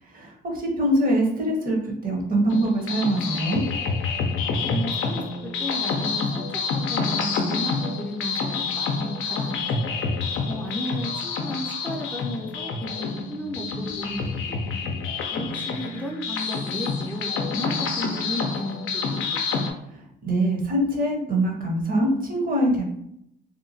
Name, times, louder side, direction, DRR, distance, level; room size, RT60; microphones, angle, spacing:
voice 1, 0.1-3.7 20.2-22.8, right 1 dB, 45° right, 0 dB, 0.9 m, -23 dB
sound 1, 2.5-19.7, left 4 dB, 80° left, 0.5 m, -28 dB
voice 2, 4.6-10.0 10.4-14.8 15.3-19.6, left 1 dB, 10° left, -2 dB, 0.5 m, -34 dB
2.8 x 2.2 x 2.7 m, 0.76 s
cardioid pair, 90°, 20 cm